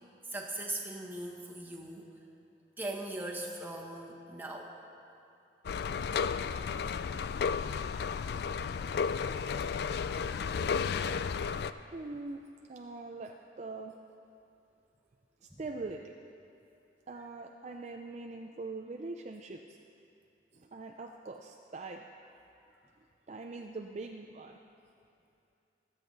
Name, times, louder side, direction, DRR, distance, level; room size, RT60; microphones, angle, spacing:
voice 1, 0.3-2.1 2.8-4.7 7.7-7.8 15.5-15.6, right 1 dB, 10° right, -2 dB, 1.4 m, -40 dB
sound 1, 5.6-11.7, left 6 dB, 65° left, 0.3 m, -33 dB
voice 2, 11.5-12.4 12.7-14.0 15.4-16.1 17.1-19.8 20.5-22.0 23.0-24.6, right 3 dB, 40° right, 2 dB, 0.5 m, -43 dB
21.5 x 8.0 x 4.0 m, 2.6 s
head